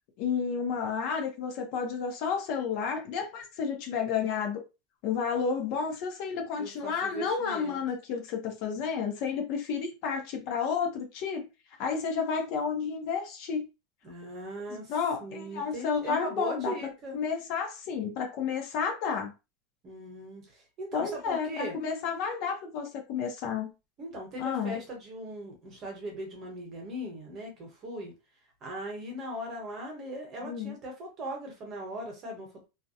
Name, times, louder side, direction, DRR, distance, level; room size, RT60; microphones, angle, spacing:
voice 1, 0.2-4.6 5.0-11.5 11.8-13.7 14.7-16.7 17.1-19.3 20.9-23.7 24.4-24.8 30.4-30.8, left 6 dB, 45° left, 0.6 m, -31 dB
voice 2, 6.6-7.8 14.0-14.9 15.2-17.2 19.8-21.7 24.0-28.1 28.6-32.6, equal, 25° right, 1.0 m, -39 dB
2.4 x 2.1 x 2.7 m
supercardioid pair, 165°, 0 cm